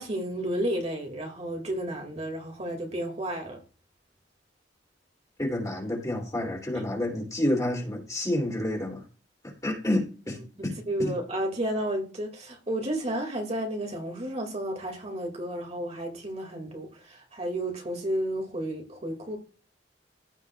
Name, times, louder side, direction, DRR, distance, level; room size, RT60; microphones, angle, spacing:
voice 1, 0.0-3.6 6.7-6.9 10.9-19.4, right 1 dB, 40° right, 2.3 m, -32 dB
voice 2, 5.4-9.0 9.4-11.1, left 1 dB, 20° left, 2.9 m, -29 dB
16.0 x 5.3 x 2.4 m
head